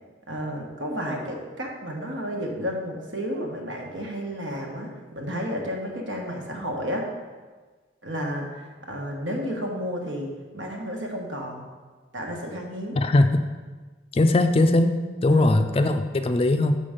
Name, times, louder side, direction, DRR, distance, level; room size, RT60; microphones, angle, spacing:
voice 1, 0.3-7.1 8.0-11.7 12.1-13.0 15.3-15.5, equal, 80° right, 0 dB, 1.4 m, -32 dB
voice 2, 12.9-13.4 14.1-15.0 15.2-16.8, left 2 dB, 30° left, 7 dB, 0.4 m, -20 dB
6.9 x 5.7 x 5.1 m, 1.4 s
head